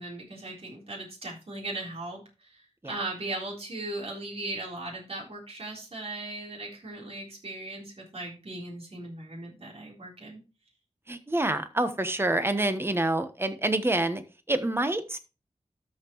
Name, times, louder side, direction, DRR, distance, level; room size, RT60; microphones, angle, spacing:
voice 1, 0.0-2.2 2.8-10.4, right 2 dB, 55° right, -3 dB, 4.0 m, -38 dB
voice 2, 11.1-14.2 14.5-15.2, right 1 dB, 20° right, 10 dB, 1.1 m, -27 dB
13.0 x 5.6 x 3.1 m, 0.30 s
wide cardioid pair, 100°, 12 cm